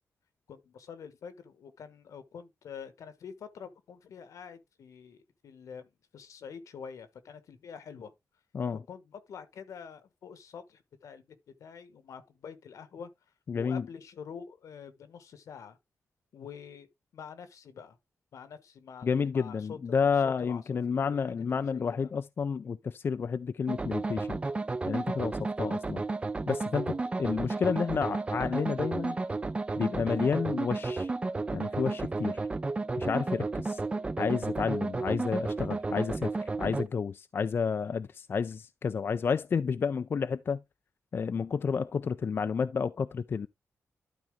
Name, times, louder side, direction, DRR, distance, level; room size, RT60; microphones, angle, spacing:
voice 1, 0.5-5.9 6.1-8.1 8.9-13.1 13.5-15.8 16.3-16.9 17.1-18.0 18.3-19.8 20.2-21.2 21.5-22.1 25.6-25.8, left 6 dB, 80° left, 1.3 m, -46 dB
voice 2, 13.5-13.8 19.0-24.4 24.9-26.0 26.5-29.2 29.8-31.1 31.5-32.4 33.0-33.8 34.2-40.6 41.1-43.5, left 6 dB, 45° left, 0.4 m, -30 dB
sound 1, 23.7-36.9, right 3 dB, 20° right, 0.4 m, -32 dB
12.0 x 4.3 x 3.6 m
wide cardioid pair, 125°, 5 cm